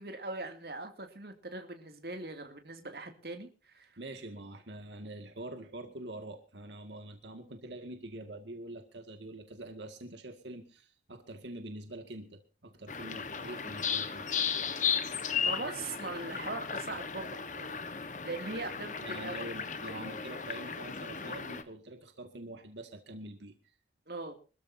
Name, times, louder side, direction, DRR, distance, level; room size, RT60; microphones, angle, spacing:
voice 1, 0.0-3.9 15.4-19.5 24.1-24.3, right 2 dB, 60° right, 5 dB, 2.6 m, -41 dB
voice 2, 4.0-14.3 19.0-23.6, right 1 dB, 85° right, 5 dB, 2.0 m, -45 dB
sound 1, 12.9-21.6, left 6 dB, 45° left, 1.3 m, -35 dB
25.5 x 14.0 x 2.8 m, 0.35 s
head